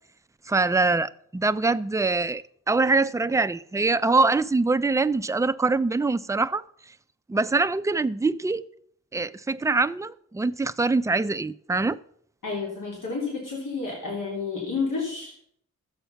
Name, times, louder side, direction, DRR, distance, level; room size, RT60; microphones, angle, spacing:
voice 1, 0.5-2.4 2.7-6.6 7.3-8.6 9.1-12.0, right 3 dB, 10° right, 0.4 m, -24 dB
voice 2, 12.4-15.3, left 4 dB, 85° left, 3.4 m, -30 dB
13.0 x 8.0 x 5.7 m
wide cardioid pair, 130°, 31 cm